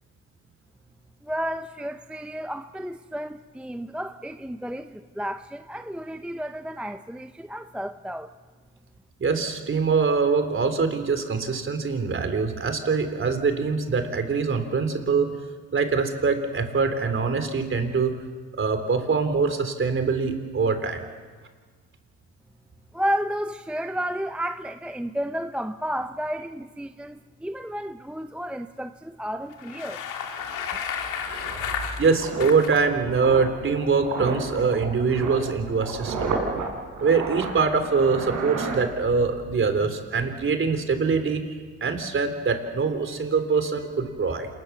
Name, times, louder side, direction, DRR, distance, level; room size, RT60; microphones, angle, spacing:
voice 1, 1.2-8.3 22.9-30.0, equal, 5° right, 0.7 m, -32 dB
voice 2, 9.2-15.3 15.7-18.1 18.6-21.1 32.0-36.4 37.0-41.5 41.8-44.5, right 5 dB, 40° right, 3.5 m, -24 dB
Bicycle, 29.5-32.8, left 7 dB, 90° left, 2.7 m, -32 dB
Water Bottle Shaking in Slow Motion and Reversed, 30.0-30.1 30.4-39.4 39.7-39.9, right 4 dB, 80° right, 6.6 m, -33 dB
27.5 x 20.5 x 7.1 m
cardioid pair, 90°, 30 cm